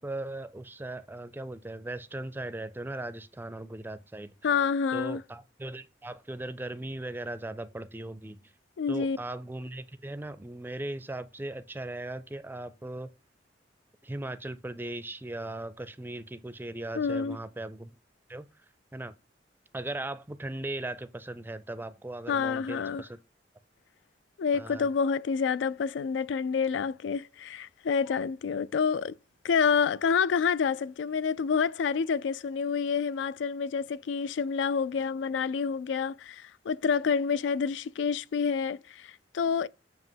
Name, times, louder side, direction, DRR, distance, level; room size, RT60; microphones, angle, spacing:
voice 1, 0.0-4.4 4.9-8.5 8.9-13.1 14.0-17.9 18.3-18.5 18.9-19.1 19.7-23.2 24.5-24.9, right 1 dB, 10° right, 0.4 m, -38 dB
voice 2, 4.4-5.2 8.8-9.2 16.9-17.4 22.3-23.0 24.4-29.2 29.4-39.7, left 6 dB, 80° left, 0.3 m, -28 dB
7.4 x 2.9 x 5.6 m
head